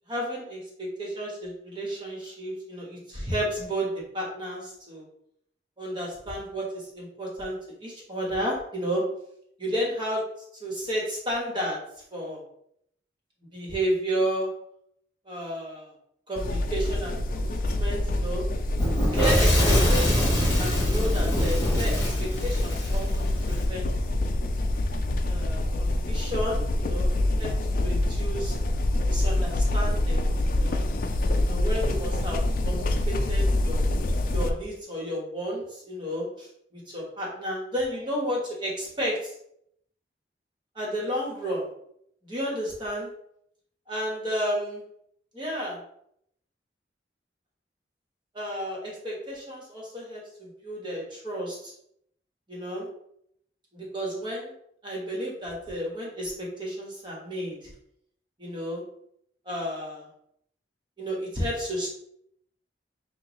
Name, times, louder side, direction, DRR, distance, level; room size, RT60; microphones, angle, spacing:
voice 1, 0.1-5.1 5.8-9.0 9.6-10.2 10.6-11.8 12.1-12.4 13.5-14.5 15.2-15.9 16.3-18.5 19.1-23.9 25.3-27.1 27.4-28.6 29.0-30.2 30.5-30.8 31.4-33.9 34.3-39.3 40.7-41.7 42.2-43.1 43.9-44.8 45.3-45.8 48.3-51.7 52.5-52.9 53.7-54.5 54.8-57.7 58.4-58.8 59.4-60.1 61.0-61.9, equal, 25° right, -3 dB, 1.2 m, -32 dB
sound 1, 16.4-34.5, left 1 dB, 50° left, 0.4 m, -26 dB
Fire / Explosion, 18.8-23.6, equal, 20° left, 1.3 m, -24 dB
5.8 x 2.3 x 3.0 m, 0.73 s
head